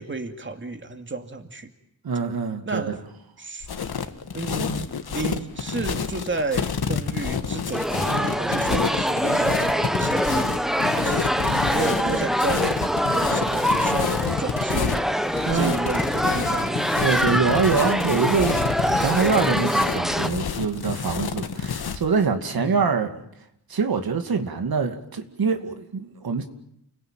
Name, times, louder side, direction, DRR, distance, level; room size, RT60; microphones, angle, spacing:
voice 1, 0.0-1.7 2.7-3.0 3.4-3.7 4.3-11.3 11.7-12.9 13.1-16.8 22.5-22.8, right 3 dB, 30° right, 2.6 m, -32 dB
voice 2, 2.0-3.0 15.5-15.7 17.0-23.1 23.7-26.5, right 5 dB, 70° right, 2.4 m, -24 dB
sound 1, 3.6-22.1, left 6 dB, 80° left, 2.1 m, -29 dB
sound 2, 7.7-20.3, equal, ahead, 1.2 m, -24 dB
30.0 x 21.0 x 9.2 m
wide cardioid pair, 130°, 37 cm